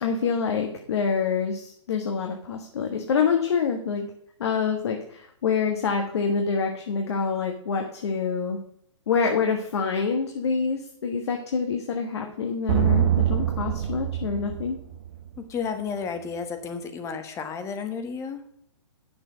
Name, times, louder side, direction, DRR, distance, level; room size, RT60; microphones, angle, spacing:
voice 1, 0.0-4.1 4.4-8.6 9.1-14.8, left 5 dB, 60° left, 3 dB, 1.3 m, -26 dB
sound 1, 12.7-15.4, right 10 dB, 50° right, 1.0 m, -24 dB
voice 2, 15.4-18.4, left 6 dB, 20° left, 8 dB, 1.1 m, -32 dB
8.8 x 7.0 x 5.0 m, 0.68 s
figure-of-eight pair, 125°, 15 cm